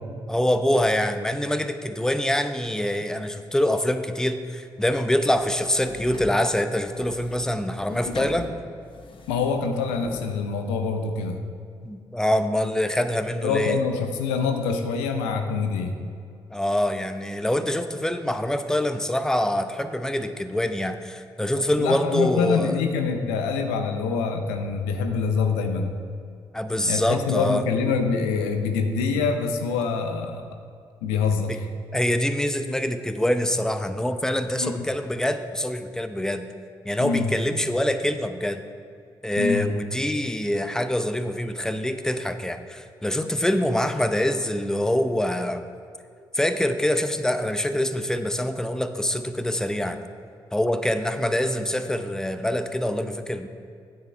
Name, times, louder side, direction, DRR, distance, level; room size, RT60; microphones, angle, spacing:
voice 1, 0.3-8.6 11.8-13.8 16.5-22.8 26.5-27.6 31.9-36.5 36.8-38.6 39.2-45.6 46.3-50.0 50.5-53.5, left 1 dB, 5° left, 8 dB, 0.7 m, -25 dB
sound 1, 5.3-10.3, left 4 dB, 50° left, 1.0 m, -41 dB
voice 2, 9.3-11.4 13.4-16.0 21.5-25.9 26.9-30.5 31.0-31.7 34.6-34.7 37.0-37.3 39.4-39.7, left 5 dB, 80° left, 5 dB, 0.7 m, -25 dB
9.3 x 7.6 x 4.5 m, 2.3 s
hypercardioid pair, 40°, 11 cm